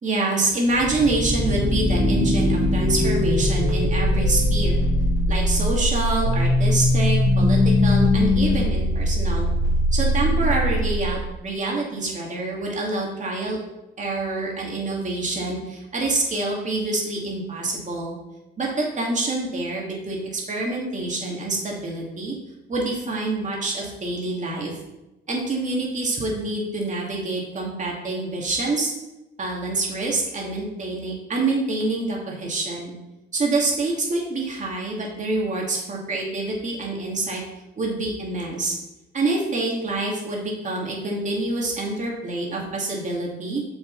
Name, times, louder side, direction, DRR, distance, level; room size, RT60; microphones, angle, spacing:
voice 1, 0.0-4.8 5.3-9.5 9.9-13.6 14.0-18.2 18.6-22.3 22.7-24.7 25.3-28.9 29.4-32.9 33.3-37.4 37.8-38.8 39.1-43.6, right 2 dB, 40° right, -2 dB, 2.4 m, -26 dB
sound 1, 0.7-11.3, left 1 dB, 80° right, 2.7 m, -21 dB
7.0 x 6.5 x 4.0 m, 0.97 s
cardioid pair, 90°, 20 cm